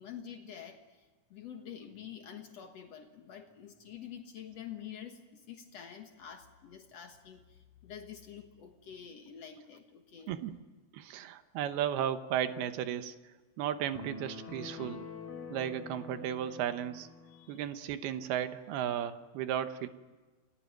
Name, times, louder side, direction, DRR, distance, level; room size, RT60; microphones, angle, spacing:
voice 1, 0.0-10.4 17.3-17.7, left 8 dB, 85° left, 5 dB, 1.4 m, -48 dB
voice 2, 10.3-10.6 10.9-13.1 13.6-15.0 15.5-17.1 17.5-19.9, right 10 dB, 70° right, 10 dB, 2.6 m, -34 dB
sound 1, 13.9-17.5, left 4 dB, 55° left, 4.5 m, -46 dB
29.5 x 20.0 x 9.2 m, 1.3 s
omnidirectional pair, 5.4 m